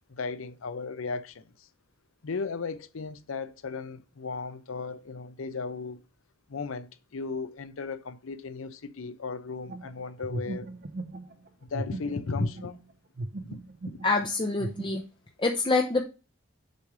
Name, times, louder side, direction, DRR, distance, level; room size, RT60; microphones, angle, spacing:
voice 1, 0.1-1.7 2.2-6.0 6.5-10.7 11.7-12.8 13.4-13.6 13.8-14.0, left 4 dB, 80° left, 0.6 m, -35 dB
sound 1, 9.7-12.9 13.2-14.1 14.6-15.0, right 2 dB, 50° right, 0.6 m, -37 dB
voice 2, 14.0-15.0 15.4-16.0, left 3 dB, 25° left, 0.6 m, -26 dB
6.8 x 3.2 x 4.7 m
head